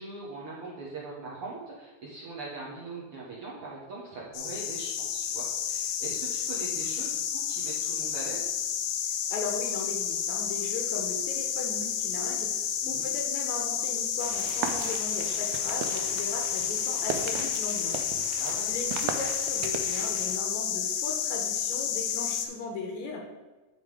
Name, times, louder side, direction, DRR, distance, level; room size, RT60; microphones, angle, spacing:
voice 1, 0.0-8.5 12.8-13.1 18.4-18.9, right 3 dB, 60° right, -5 dB, 1.6 m, -41 dB
sound 1, 4.3-22.5, left 8 dB, 85° left, 2.4 m, -30 dB
voice 2, 9.3-23.3, left 3 dB, 70° left, 1 dB, 2.0 m, -38 dB
sound 2, 14.2-20.4, right 7 dB, 75° right, 1.8 m, -38 dB
10.0 x 3.8 x 4.8 m, 1.2 s
omnidirectional pair, 3.8 m